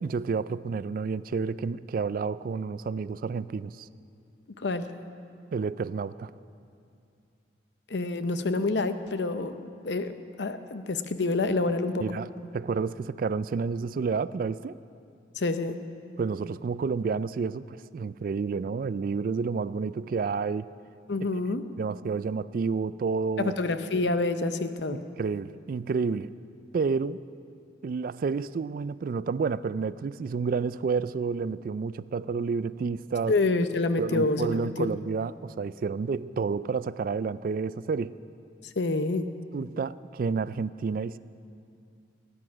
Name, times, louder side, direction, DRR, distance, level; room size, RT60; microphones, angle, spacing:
voice 1, 0.0-3.9 5.5-6.3 12.0-12.3 12.5-14.8 16.2-20.7 21.8-23.5 24.9-26.3 26.7-27.2 27.8-33.3 34.0-38.2 39.5-41.2, right 5 dB, 50° right, 17 dB, 0.3 m, -30 dB
voice 2, 7.9-9.6 9.8-10.1 10.4-12.0 15.4-15.8 21.1-21.6 23.4-25.0 33.3-34.9 38.8-39.2, left 3 dB, 70° left, 10 dB, 0.7 m, -27 dB
18.0 x 9.9 x 6.1 m, 2.5 s
head